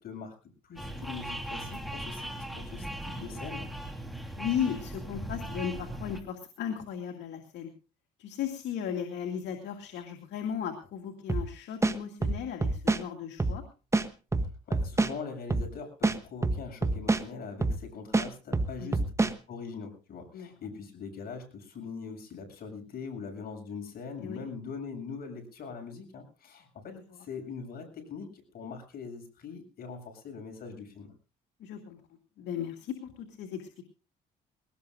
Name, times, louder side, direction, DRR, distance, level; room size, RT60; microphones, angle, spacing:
voice 1, 0.0-0.3 0.6-3.7 14.7-31.1, left 5 dB, 55° left, 4 dB, 7.4 m, -42 dB
sound 1, 0.8-6.2, right 1 dB, ahead, 3.2 m, -38 dB
voice 2, 4.4-7.7 8.2-13.6 18.8-19.0 20.3-20.5 24.2-24.4 26.9-27.0 31.6-32.0 32.4-33.8, left 8 dB, 75° left, 4 dB, 2.4 m, -36 dB
sound 2, 11.3-11.5 11.8-13.0 13.4-13.6 13.9-15.1 15.5-15.7 16.0-17.2 17.6-17.8 18.1-19.3, right 2 dB, 15° right, 1.2 m, -26 dB
22.5 x 19.0 x 2.4 m, 0.34 s
cardioid pair, 95°, 18 cm